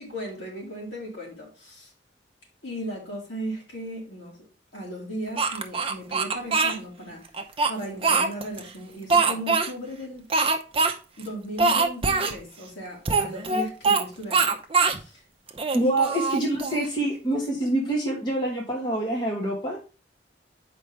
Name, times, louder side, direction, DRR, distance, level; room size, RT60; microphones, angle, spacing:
voice 1, 0.0-1.9 2.6-4.5 4.7-7.2 7.7-10.3 11.2-14.6 14.9-15.2 15.8-15.9, right 1 dB, 70° left, 3.4 m, -36 dB
Speech, 5.4-6.8 7.3-8.6 9.1-9.7 10.3-10.9 11.2-11.3 11.6-12.3 13.0-14.0 14.3-15.0 15.5-16.9, right 4 dB, 30° right, 0.7 m, -23 dB
voice 2, 15.7-19.8, right 1 dB, 25° left, 1.3 m, -26 dB
7.5 x 5.1 x 3.4 m
head